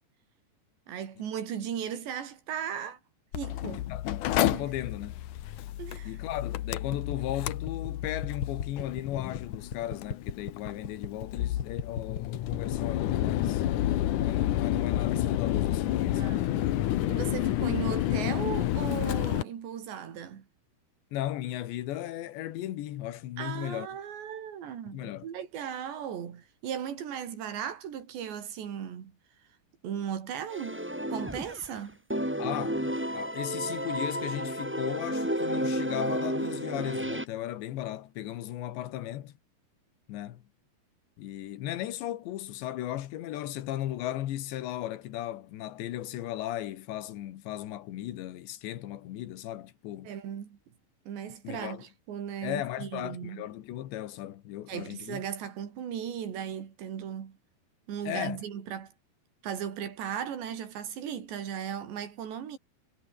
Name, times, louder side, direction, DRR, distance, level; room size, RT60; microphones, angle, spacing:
voice 1, 0.9-3.0 3.3-3.9 4.5-4.7 5.8-6.2 16.1-16.6 17.1-20.5 23.4-29.1 29.8-30.8 31.1-32.0 50.1-50.6 51.1-53.4 54.7-57.4 57.9-58.9 59.4-62.6, right 8 dB, 80° right, 5.4 m, -37 dB
Mechanical fan, 3.3-19.4, left 13 dB, 70° left, 2.0 m, -30 dB
voice 2, 3.8-4.1 4.3-5.2 6.1-13.6 14.2-16.5 21.1-23.9 24.9-25.3 32.4-39.4 40.1-40.4 41.2-50.1 51.4-51.9 52.4-55.2 58.1-58.4, left 13 dB, 85° left, 3.9 m, -36 dB
sound 1, 6.9-15.5, left 6 dB, 40° left, 2.5 m, -37 dB
sound 2, 30.5-31.8 32.1-37.2, equal, 5° right, 2.4 m, -32 dB
omnidirectional pair, 5.0 m